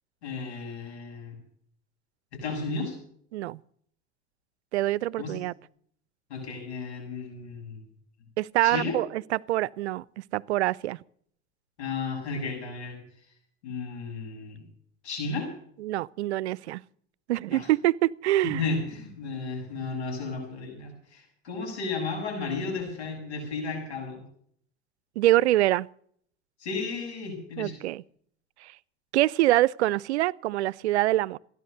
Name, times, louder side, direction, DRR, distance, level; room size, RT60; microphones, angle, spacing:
voice 1, 0.2-1.4 2.3-3.0 5.2-5.4 6.3-7.8 8.6-8.9 11.8-13.0 13.6-14.6 15.0-15.5 17.5-17.7 18.4-24.2 26.6-27.8, left 4 dB, 85° left, 7.3 m, -33 dB
voice 2, 4.7-5.5 8.4-11.0 15.8-16.8 17.3-18.6 25.2-25.9 27.6-28.0 28.6-28.8 29.1-31.4, right 16 dB, 90° right, 0.5 m, -25 dB
16.0 x 11.0 x 6.6 m
hypercardioid pair, 75°, 33 cm